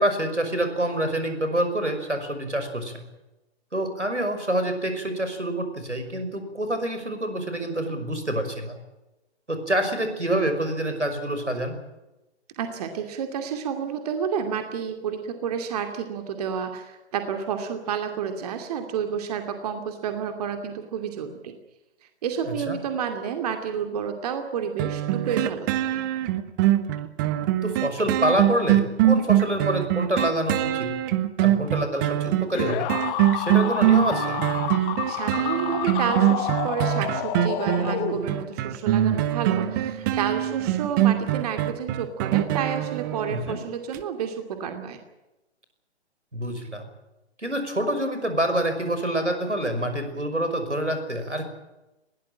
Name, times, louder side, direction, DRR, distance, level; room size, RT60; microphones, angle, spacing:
voice 1, 0.0-2.9 3.7-8.8 9.5-11.8 22.5-22.8 27.6-30.9 31.4-32.9 33.3-34.4 43.3-43.6 46.3-46.9 47.4-51.5, right 1 dB, 90° right, 7 dB, 5.7 m, -27 dB
voice 2, 12.6-21.5 22.2-26.0 35.0-45.0, right 7 dB, 35° right, 6 dB, 2.6 m, -30 dB
sound 1, 24.8-43.5 43.9-44.0, right 13 dB, 15° right, 0.9 m, -23 dB
sound 2, 32.5-38.6, left 10 dB, 15° left, 1.3 m, -30 dB
21.5 x 17.0 x 8.8 m, 0.98 s
figure-of-eight pair, 130°, 34 cm